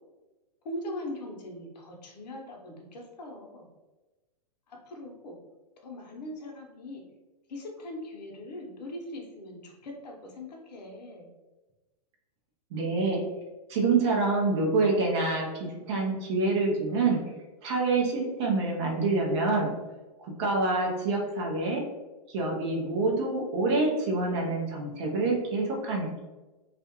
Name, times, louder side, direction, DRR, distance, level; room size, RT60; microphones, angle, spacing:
voice 1, 0.6-3.7 4.7-5.3 5.8-7.0 7.5-11.3, left 1 dB, 80° left, 1 dB, 0.7 m, -41 dB
voice 2, 12.7-13.2 13.7-17.2 17.6-19.7 20.2-21.8 22.3-26.2, right 3 dB, 45° right, -1 dB, 0.6 m, -26 dB
2.4 x 2.1 x 2.8 m, 1.1 s
hypercardioid pair, 155°, 21 cm